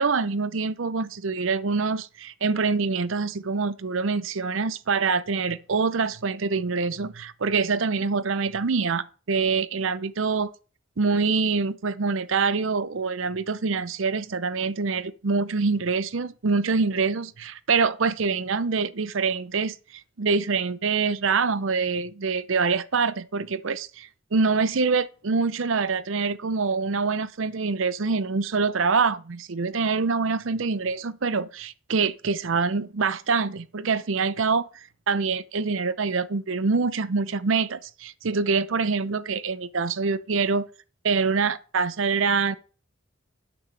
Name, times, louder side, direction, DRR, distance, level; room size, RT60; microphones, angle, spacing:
voice 1, 0.0-10.5 11.0-19.8 20.2-40.7 41.0-42.5, right 4 dB, 75° right, 0.6 m, -25 dB
11.0 x 8.6 x 3.4 m
head